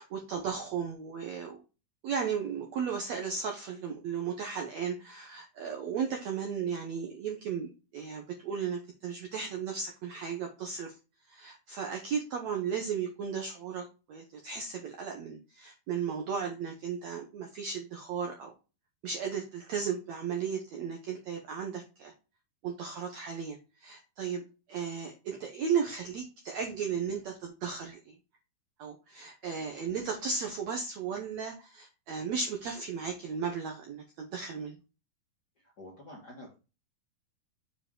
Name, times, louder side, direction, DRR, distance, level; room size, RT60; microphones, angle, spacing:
voice 1, 0.0-1.6 2.0-11.0 11.3-18.5 19.0-22.1 22.6-24.4 24.7-28.2 28.8-34.8, right 6 dB, 80° right, 3 dB, 1.6 m, -35 dB
voice 2, 35.6-36.6, left 1 dB, 50° left, -3 dB, 1.2 m, -48 dB
7.0 x 4.6 x 3.7 m, 0.31 s
omnidirectional pair, 4.4 m